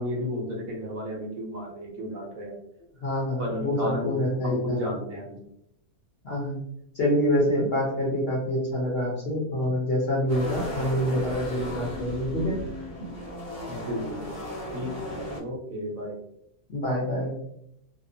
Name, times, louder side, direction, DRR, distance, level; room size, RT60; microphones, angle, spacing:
voice 1, 0.0-2.5 3.4-4.2 4.4-5.4 13.7-16.2, left 1 dB, 65° right, -1 dB, 1.0 m, -33 dB
voice 2, 3.0-4.8 6.2-6.6 6.9-12.6 16.7-17.3, equal, 55° left, -5 dB, 0.7 m, -26 dB
sound 1, 10.3-15.4, left 1 dB, 20° right, 0.4 m, -36 dB
2.7 x 2.0 x 2.5 m, 0.76 s
omnidirectional pair, 1.7 m